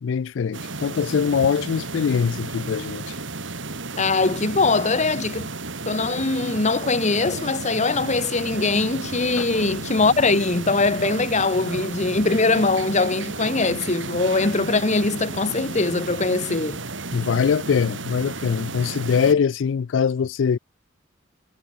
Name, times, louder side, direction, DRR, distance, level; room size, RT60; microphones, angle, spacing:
voice 1, 0.0-3.1 9.4-9.5 17.1-20.6, left 6 dB, 70° left, 0.4 m, -22 dB
sound 1, 0.5-19.3, right 3 dB, 75° right, 3.4 m, -33 dB
voice 2, 4.0-5.5 5.8-16.8, left 3 dB, 40° left, 1.3 m, -22 dB
sound 2, 7.4-11.2, left 1 dB, 85° left, 3.7 m, -49 dB
head